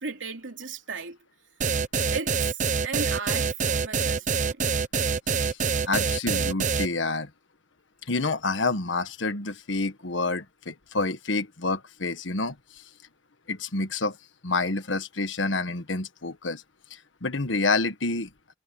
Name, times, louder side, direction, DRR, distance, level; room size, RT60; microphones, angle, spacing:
voice 1, 0.0-1.2 2.1-4.7, right 4 dB, 85° right, 3.1 m, -35 dB
sound 1, 1.6-6.9, right 5 dB, 40° right, 0.8 m, -25 dB
voice 2, 5.8-7.3 8.1-12.8 13.5-14.2 14.4-16.6 16.9-18.5, left 3 dB, 75° left, 1.6 m, -28 dB
head